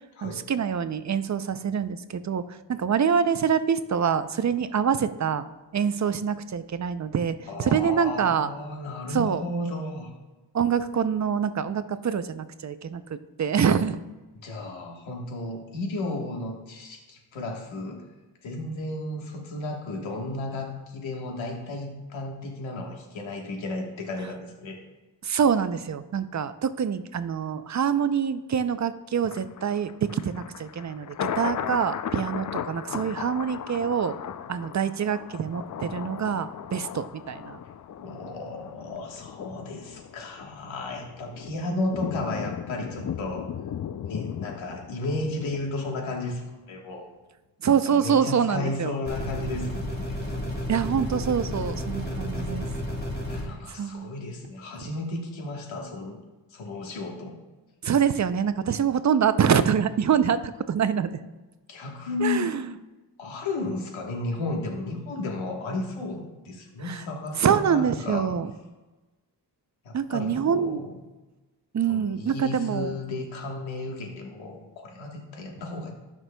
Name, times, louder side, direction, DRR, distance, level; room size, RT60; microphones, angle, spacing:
voice 1, 0.2-5.4 5.7-8.5 9.1-9.4 10.5-14.0 25.2-34.1 34.5-37.6 47.6-49.0 50.7-52.7 53.8-54.1 57.8-60.4 60.7-61.2 62.2-62.6 66.8-67.0 67.4-68.5 69.9-70.8 71.7-73.0, right 7 dB, 40° right, 12 dB, 0.5 m, -25 dB
voice 2, 7.5-10.1 14.3-18.0 18.4-24.8 38.0-43.5 44.0-47.1 47.7-50.2 53.3-56.2 56.5-57.3 61.7-62.5 63.2-68.3 69.8-71.0 71.9-75.9, left 2 dB, 90° left, 1 dB, 1.4 m, -33 dB
Thunder, 29.3-46.4 46.8-46.9, left 9 dB, 45° left, 0.4 m, -37 dB
sound 1, 49.1-53.5, left 1 dB, 25° left, 2.3 m, -31 dB
13.5 x 6.1 x 2.2 m, 1.2 s
cardioid pair, 65°, 45 cm